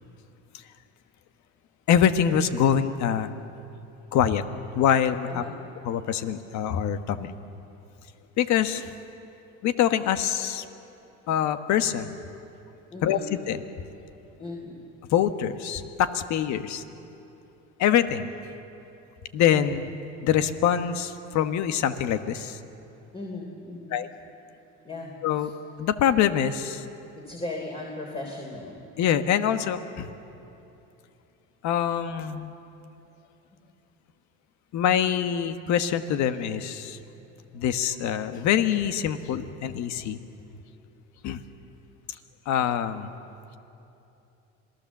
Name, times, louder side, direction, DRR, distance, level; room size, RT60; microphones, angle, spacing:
voice 1, 1.9-3.3 4.1-4.4 4.7-5.4 5.8-7.3 8.4-8.9 9.6-10.6 11.3-12.2 13.0-13.6 15.1-16.8 17.8-18.3 19.3-19.9 20.2-22.6 23.9-24.1 25.2-25.5 25.8-26.8 29.0-30.1 31.6-32.5 34.7-37.0 37.5-40.2 41.2-41.4 42.5-43.1, left 9 dB, 65° left, 10 dB, 1.3 m, -24 dB
voice 2, 5.3-5.6 12.9-13.3 14.4-14.8 23.1-23.9 24.8-25.1 25.4-25.5 27.2-28.7, left 2 dB, 20° left, -1 dB, 3.3 m, -37 dB
27.0 x 18.5 x 7.3 m, 2.8 s
supercardioid pair, 95°, 31 cm